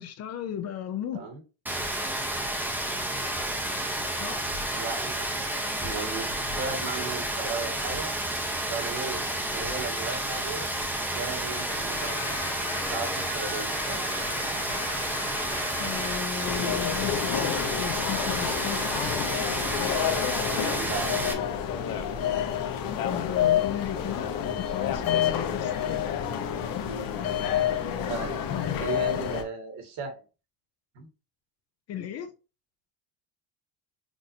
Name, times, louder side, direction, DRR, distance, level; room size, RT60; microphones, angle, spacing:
voice 1, 0.0-1.3 4.1-4.5 15.8-19.3 21.2-21.3 23.0-24.3 24.6-26.1 28.5-28.8 29.1-29.3 31.9-32.3, left 9 dB, 40° left, 0.4 m, -35 dB
Rain, 1.7-21.3, right 1 dB, 5° right, 0.6 m, -31 dB
voice 2, 4.7-5.3 5.8-8.1 8.6-10.7 11.0-12.3 12.9-14.3 20.7-21.2 28.1-28.4 28.8-30.2 31.0-31.1, right 4 dB, 70° right, 1.9 m, -36 dB
sound 1, 11.5-16.2 16.5-18.4, left 2 dB, 10° left, 1.2 m, -38 dB
sound 2, 16.4-29.4, left 9 dB, 60° left, 0.9 m, -29 dB
6.1 x 2.5 x 2.6 m
cardioid pair, 170°, 40 cm